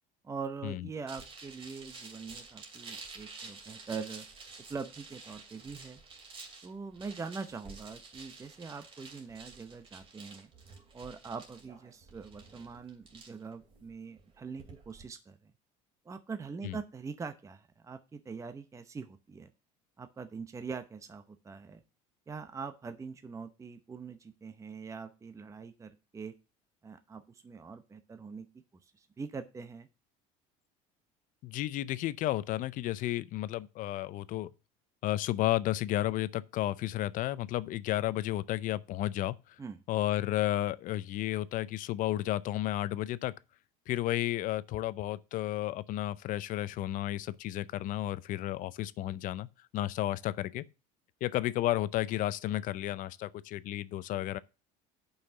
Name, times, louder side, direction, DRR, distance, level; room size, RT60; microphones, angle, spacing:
voice 1, 0.2-4.3 4.7-6.0 6.6-10.5 10.9-15.5 16.0-19.5 20.0-21.8 22.3-26.3 26.8-28.5 28.8-29.9 39.6-39.8, right 5 dB, 20° right, 0.8 m, -43 dB
sound 1, 1.1-15.0, right 4 dB, 35° right, 2.5 m, -50 dB
voice 2, 31.4-34.5 35.0-39.3 39.9-43.3 43.9-49.5 49.7-50.6 51.2-54.4, left 14 dB, 55° left, 0.6 m, -32 dB
6.7 x 5.7 x 6.6 m
supercardioid pair, 110°, 17 cm